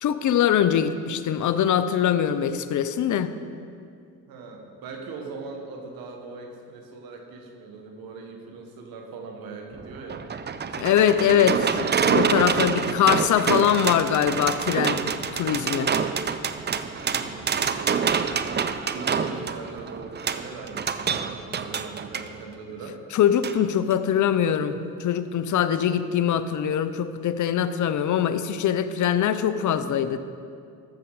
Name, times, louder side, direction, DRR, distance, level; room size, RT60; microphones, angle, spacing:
voice 1, 0.0-3.3 10.7-15.9 23.1-30.2, left 9 dB, 60° left, 12 dB, 0.7 m, -23 dB
voice 2, 4.3-10.3 17.0-18.5 18.9-23.0, right 4 dB, 80° right, 2 dB, 1.5 m, -40 dB
sound 1, 9.7-22.3 23.4-23.6 23.9-24.0, right 6 dB, 30° right, 0.6 m, -26 dB
13.5 x 7.2 x 4.8 m, 2.5 s
supercardioid pair, 70°, 35 cm